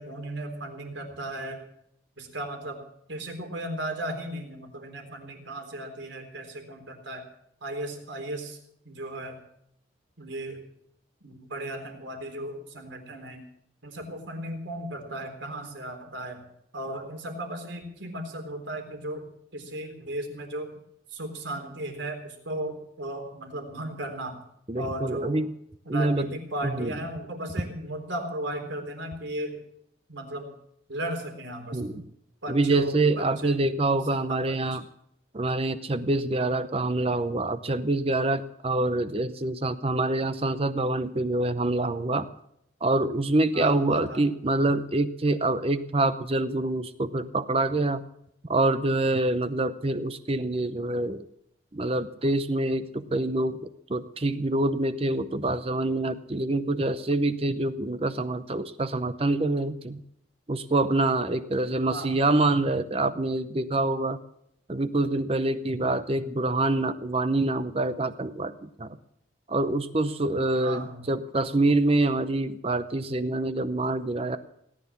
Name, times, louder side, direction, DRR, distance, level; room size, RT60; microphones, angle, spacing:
voice 1, 0.0-1.6 2.2-7.3 7.6-8.6 8.8-9.4 10.2-10.6 11.2-13.4 13.8-16.5 16.7-19.3 19.5-20.7 21.1-24.4 24.8-25.4 25.9-29.6 30.1-30.5 30.9-32.0 32.4-33.6 34.3-34.8 43.5-44.3 53.0-53.3 61.9-62.1 70.6-71.1, right 1 dB, 75° right, 5 dB, 3.8 m, -36 dB
voice 2, 24.7-25.5 25.9-26.3 26.6-26.9 31.7-32.0 32.5-34.9 35.3-42.3 42.8-48.0 48.5-51.2 51.7-60.0 60.5-64.2 64.7-69.0 69.5-74.4, right 2 dB, 30° right, 11 dB, 0.7 m, -26 dB
18.0 x 10.5 x 7.1 m, 0.73 s
head